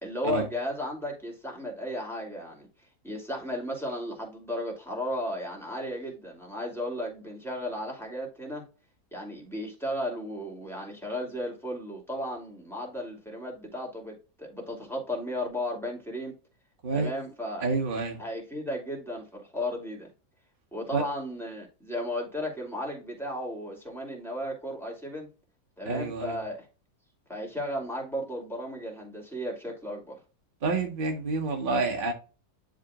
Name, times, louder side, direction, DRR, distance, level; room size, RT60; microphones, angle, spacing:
voice 1, 0.0-2.7 3.0-8.6 9.1-16.3 16.9-17.7 18.2-20.1 20.7-25.3 25.8-26.7 27.3-30.2, left 1 dB, ahead, 2.6 m, -35 dB
voice 2, 17.6-18.2 20.9-21.0 25.8-26.4 30.6-32.1, right 3 dB, 35° right, 1.1 m, -28 dB
10.5 x 3.9 x 2.4 m
omnidirectional pair, 1.8 m